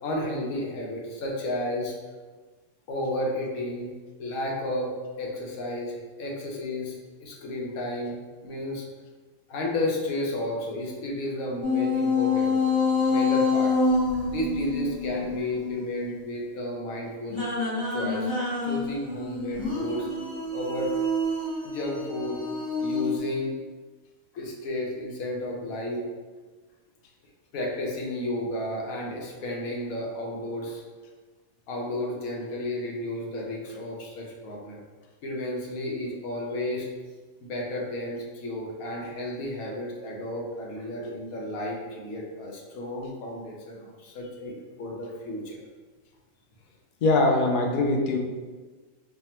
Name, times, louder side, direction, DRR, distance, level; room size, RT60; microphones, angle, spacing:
voice 1, 0.0-2.0 2.9-3.9 4.2-8.8 9.5-12.5 13.1-13.7 14.1-17.4 17.9-18.3 18.6-20.1 20.5-20.9 21.6-22.4 22.8-23.5 24.3-26.1 27.5-30.8 31.7-34.8 35.2-36.9 37.4-45.6, left 1 dB, 85° left, -1 dB, 1.2 m, -32 dB
sound 1, 11.6-16.1 17.3-23.2, left 3 dB, 45° left, 1.4 m, -27 dB
voice 2, 47.0-48.2, left 2 dB, 65° left, 2 dB, 0.5 m, -22 dB
3.3 x 2.3 x 4.2 m, 1.4 s
omnidirectional pair, 1.4 m